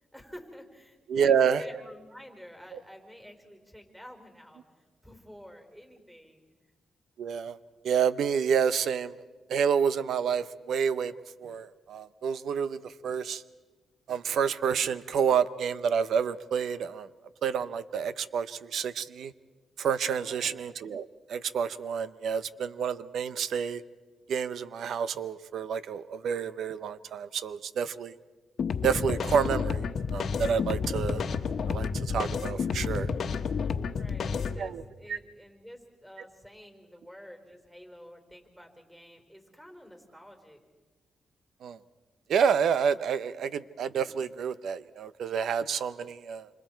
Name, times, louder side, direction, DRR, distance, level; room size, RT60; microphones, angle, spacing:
voice 1, 0.1-4.6 5.0-6.4 20.2-20.6 33.9-40.6, equal, 5° right, 4 dB, 4.3 m, -49 dB
voice 2, 1.1-1.6 2.7-2.8 7.2-7.6 7.8-9.1 9.5-11.1 11.4-13.4 14.1-17.1 17.4-19.3 19.8-23.8 24.3-28.1 28.8-29.8 30.1-31.2 31.7-33.1 34.6-34.8 35.1-35.2 41.6-41.8 42.3-46.5, right 7 dB, 75° right, 15 dB, 0.7 m, -29 dB
sound 1, 28.6-34.6, left 5 dB, 65° left, 1.3 m, -30 dB
27.5 x 26.0 x 4.6 m, 1.3 s
cardioid pair, 90°, 0 cm